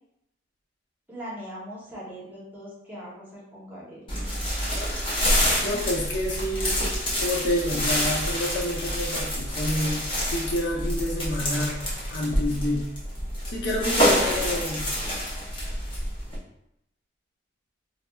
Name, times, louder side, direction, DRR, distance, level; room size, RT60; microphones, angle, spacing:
voice 1, 1.1-4.0, equal, 10° right, -7 dB, 0.8 m, -40 dB
sound 1, 4.1-16.4, equal, 30° left, 0.8 m, -27 dB
voice 2, 5.6-11.8 12.1-12.9 13.5-14.9, left 1 dB, 70° left, -2 dB, 0.7 m, -28 dB
4.0 x 2.1 x 2.2 m, 0.81 s
head